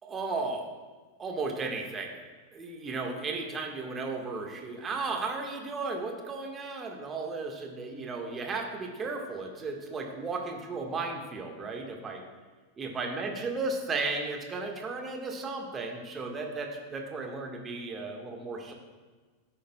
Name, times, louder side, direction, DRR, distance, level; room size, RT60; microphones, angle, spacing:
voice 1, 0.0-0.7 1.2-2.2 2.5-12.2 12.8-18.7, right 3 dB, 20° right, 2 dB, 1.6 m, -35 dB
15.0 x 8.7 x 2.3 m, 1.4 s
figure-of-eight pair, 90°, 0 cm